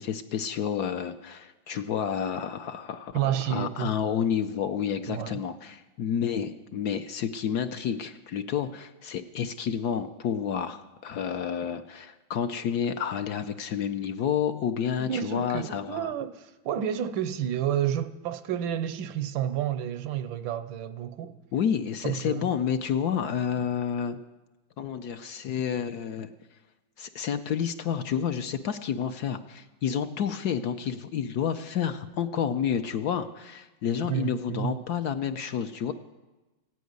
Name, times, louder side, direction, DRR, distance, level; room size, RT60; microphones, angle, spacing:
voice 1, 0.0-16.1 21.5-24.2 24.8-26.3 27.0-35.9, left 8 dB, 65° left, 1.1 m, -30 dB
voice 2, 3.1-3.9 5.1-5.4 15.0-21.4 22.0-22.5 34.1-34.8, right 10 dB, 85° right, 1.6 m, -30 dB
15.5 x 9.3 x 9.5 m
omnidirectional pair, 2.1 m